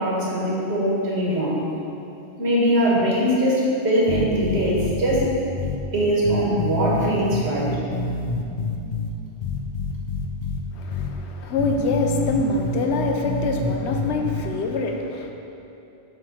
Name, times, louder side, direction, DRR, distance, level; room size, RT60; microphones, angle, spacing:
voice 1, 0.0-1.6 2.4-5.3 5.9-7.8, equal, 70° right, -5 dB, 1.6 m, -21 dB
sound 1, 4.1-5.3 5.6-5.8 6.2-9.1 9.4-10.6 10.9-11.1 11.6-14.4, left 4 dB, 65° left, 0.8 m, -27 dB
voice 2, 10.7-15.3, left 3 dB, 85° left, 3 dB, 0.9 m, -25 dB
7.4 x 3.2 x 5.9 m, 2.7 s
omnidirectional pair, 1.1 m